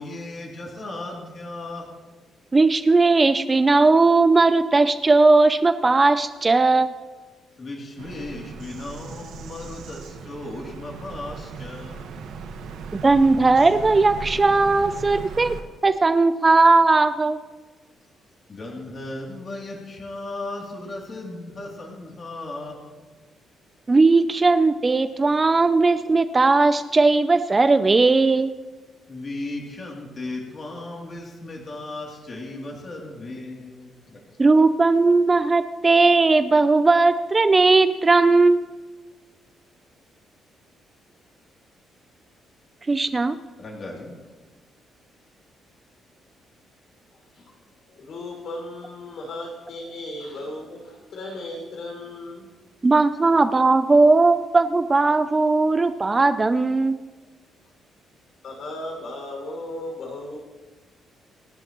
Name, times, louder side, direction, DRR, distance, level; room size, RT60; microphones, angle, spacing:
voice 1, 0.0-1.8 7.6-12.3 18.5-23.2 29.1-34.4 43.6-44.2, left 2 dB, 35° left, -2 dB, 2.8 m, -36 dB
voice 2, 2.5-6.9 13.0-15.5 15.8-17.4 23.9-28.5 34.4-38.7 42.9-43.4 52.8-57.0, right 3 dB, 20° right, 11 dB, 0.5 m, -18 dB
Bird vocalization bird call bird song, 8.0-15.6, right 5 dB, 85° right, 1.3 m, -37 dB
voice 3, 47.9-52.5 58.4-60.4, left 1 dB, 60° left, 0 dB, 5.5 m, -36 dB
27.0 x 11.0 x 3.0 m, 1.3 s
cardioid pair, 150°, 0 cm